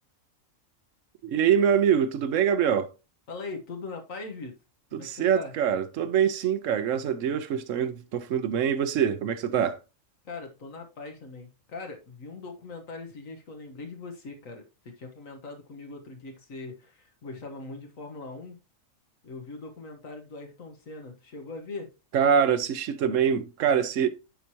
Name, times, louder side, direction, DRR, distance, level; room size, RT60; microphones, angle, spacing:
voice 1, 1.2-2.9 4.9-9.8 22.1-24.1, right 8 dB, 70° right, 1.1 m, -24 dB
voice 2, 3.3-4.5 4.9-5.5 10.2-18.6 19.2-21.9, left 3 dB, 80° left, 1.7 m, -41 dB
11.0 x 4.8 x 2.9 m
omnidirectional pair, 1.4 m